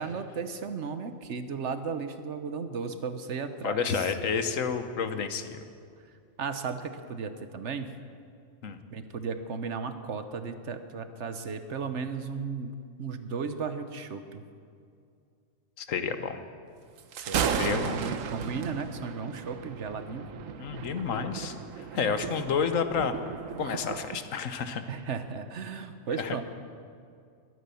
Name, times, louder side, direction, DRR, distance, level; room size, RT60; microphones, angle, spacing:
voice 1, 0.0-4.1 6.4-7.9 8.9-12.7 13.0-14.4 17.2-20.3 24.9-26.4, right 5 dB, 65° right, 9 dB, 1.2 m, -35 dB
voice 2, 3.6-5.6 8.6-8.8 15.8-16.4 17.6-18.0 20.6-23.1 23.6-24.8 26.2-26.4, left 6 dB, 80° left, 9 dB, 1.3 m, -30 dB
Thunder, 17.0-24.2, right 7 dB, 85° right, 1.2 m, -35 dB
22.0 x 9.5 x 6.9 m, 2.4 s
omnidirectional pair, 1.4 m